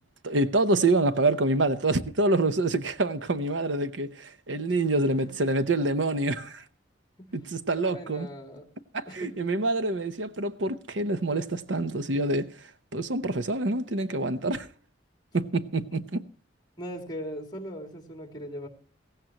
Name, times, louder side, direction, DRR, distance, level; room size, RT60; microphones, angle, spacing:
voice 1, 0.2-6.6 7.3-8.3 8.9-14.7 15.3-16.2, right 2 dB, 80° right, 0.9 m, -26 dB
voice 2, 7.9-8.6 9.1-9.3 16.8-18.7, equal, 20° left, 2.8 m, -39 dB
16.5 x 15.5 x 3.0 m
head